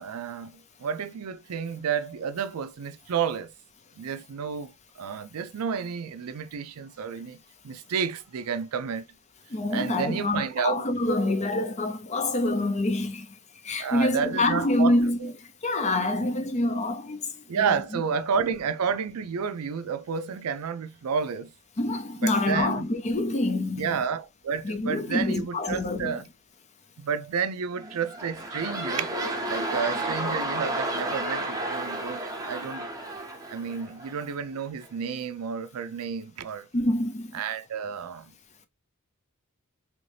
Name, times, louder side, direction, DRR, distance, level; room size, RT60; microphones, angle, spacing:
voice 1, 0.0-3.5 4.0-4.7 5.0-9.1 9.7-10.9 13.8-15.3 17.5-21.5 22.2-22.9 23.8-26.3 27.0-29.2 29.5-32.9 33.5-36.7 37.3-38.3, right 6 dB, 80° right, 0.4 m, -31 dB
voice 2, 9.5-13.3 13.6-15.3 15.6-18.0 21.8-24.0 24.6-26.2 36.7-37.3, left 2 dB, 30° left, 0.5 m, -26 dB
sound 1, 27.8-34.3 34.8-34.9, right 1 dB, 15° right, 0.7 m, -32 dB
3.1 x 2.7 x 3.2 m
head